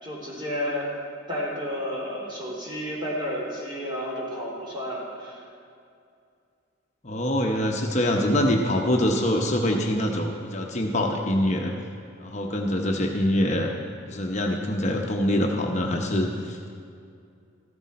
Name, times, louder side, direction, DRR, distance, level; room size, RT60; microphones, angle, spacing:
voice 1, 0.0-0.9 1.3-5.4, equal, 25° right, -4 dB, 2.9 m, -31 dB
voice 2, 7.0-11.7 12.2-13.7 14.1-16.7, left 1 dB, 35° left, 1 dB, 0.8 m, -24 dB
14.5 x 12.5 x 4.2 m, 2.4 s
head